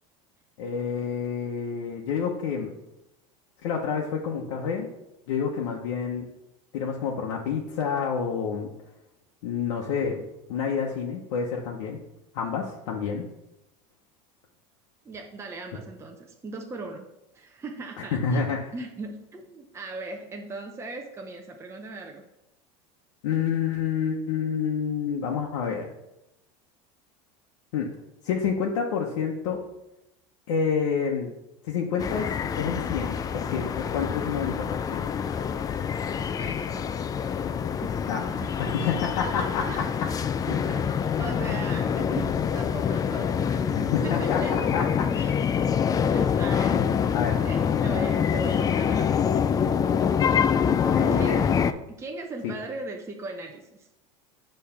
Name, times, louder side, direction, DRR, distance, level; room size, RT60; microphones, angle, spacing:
voice 1, 0.6-2.7 3.6-4.9 5.3-6.2 6.7-8.7 9.4-10.2 10.5-12.0 12.3-13.2 18.0-18.7 23.2-25.9 27.7-27.9 28.2-29.6 30.5-31.3 31.6-32.3 32.5-35.1 38.1-38.2 38.6-39.7 43.7-45.1 45.6-45.7 46.6-46.8 47.1-47.4 50.9-51.4 52.4-52.5, left 6 dB, 80° left, -1 dB, 0.9 m, -28 dB
voice 2, 15.0-17.1 17.3-18.4 18.7-22.2 36.4-37.0 37.8-38.9 39.7-40.8 41.2-44.7 45.1-45.4 46.1-47.1 47.4-49.2 49.6-49.7 50.8-51.5 51.9-53.9, right 3 dB, 15° right, 2 dB, 0.7 m, -39 dB
sound 1, 32.0-51.7, left 7 dB, 25° left, 0.3 m, -26 dB
6.6 x 3.2 x 5.7 m, 0.90 s
supercardioid pair, 120°, 16 cm